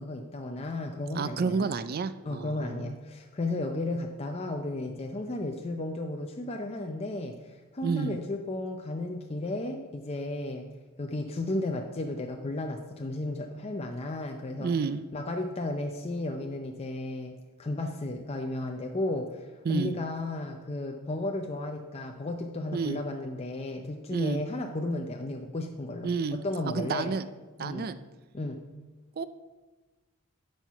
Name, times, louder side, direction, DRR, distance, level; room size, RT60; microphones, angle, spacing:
voice 1, 0.0-1.8 2.2-10.7 11.0-14.8 15.1-17.3 17.6-27.1 27.6-27.9 28.3-28.6, left 2 dB, 30° left, 3 dB, 0.5 m, -34 dB
voice 2, 1.1-2.9 7.8-8.2 14.6-15.0 19.6-20.0 22.7-23.0 24.1-24.4 26.0-27.3 27.6-28.0 29.2-29.3, right 5 dB, 45° right, 13 dB, 0.4 m, -30 dB
11.5 x 4.6 x 5.7 m, 1.2 s
head